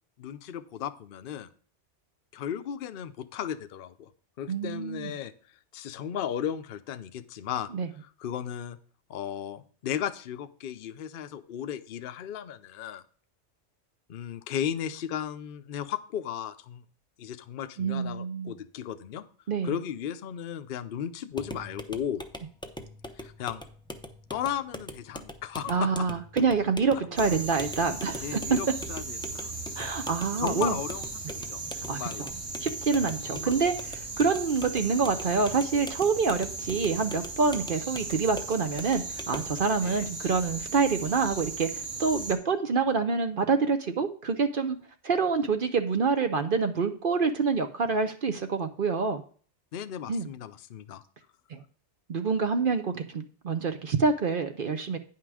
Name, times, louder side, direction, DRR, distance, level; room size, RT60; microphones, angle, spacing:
voice 1, 0.2-1.5 2.3-4.1 4.4-5.3 5.7-7.7 8.0-8.8 9.1-13.0 14.1-16.8 17.2-19.2 19.6-22.2 23.2-23.6 24.3-25.9 28.2-29.5 30.4-32.3 33.3-33.5 39.8-40.1 49.7-51.0, left 9 dB, 55° left, 10 dB, 0.7 m, -35 dB
voice 2, 4.5-5.1 7.7-7.9 17.8-18.5 19.5-19.7 25.7-28.6 29.8-30.8 31.9-32.0 32.6-33.7 34.2-44.8 45.0-49.2 50.1-50.3 51.5-51.6 52.1-55.0, right 4 dB, 50° right, 8 dB, 0.8 m, -27 dB
sound 1, 21.3-39.6, left 1 dB, 5° left, 0.4 m, -43 dB
sound 2, 27.2-42.3, right 3 dB, 90° right, 2.3 m, -37 dB
9.6 x 5.8 x 4.8 m, 0.43 s
omnidirectional pair, 1.2 m